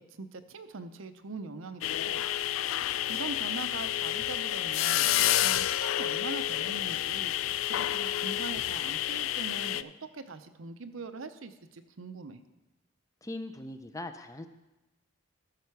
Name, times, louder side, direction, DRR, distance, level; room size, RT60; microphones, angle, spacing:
voice 1, 0.0-2.5 3.1-5.1 5.4-7.3 7.7-12.4, right 3 dB, 80° right, 9 dB, 0.7 m, -42 dB
sound 1, 1.8-9.8, left 13 dB, 80° left, 0.3 m, -29 dB
voice 2, 13.2-14.5, left 2 dB, 15° left, 8 dB, 0.5 m, -40 dB
13.0 x 6.7 x 4.7 m, 1.0 s
head